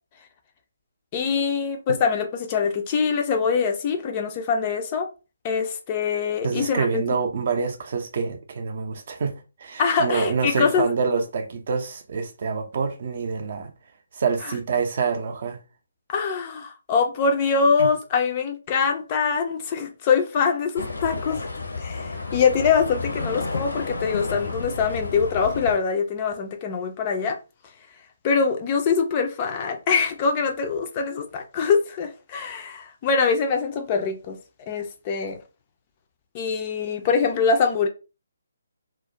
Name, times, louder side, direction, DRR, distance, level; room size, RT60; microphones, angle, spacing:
voice 1, 1.1-5.1 5.4-7.0 9.8-10.9 16.1-21.4 21.8-27.4 28.2-34.4 34.7-35.4 36.3-37.9, left 5 dB, 25° left, 0.3 m, -23 dB
voice 2, 6.4-9.3 9.6-13.7 14.1-15.6 17.8-17.9 22.1-22.3, right 5 dB, 45° right, 0.5 m, -26 dB
sound 1, 20.7-25.8, left 3 dB, 70° left, 0.6 m, -31 dB
2.3 x 2.1 x 2.7 m
figure-of-eight pair, 140°, 0 cm